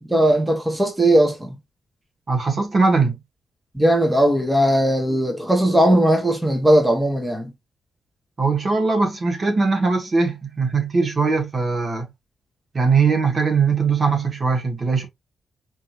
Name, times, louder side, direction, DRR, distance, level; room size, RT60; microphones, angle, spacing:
voice 1, 0.0-1.6 3.7-7.5, right 1 dB, 10° right, 1.3 m, -18 dB
voice 2, 2.3-3.1 8.4-12.1 12.7-15.0, right 4 dB, 45° right, 1.7 m, -20 dB
4.5 x 3.1 x 2.7 m
cardioid pair, 80°, 0 cm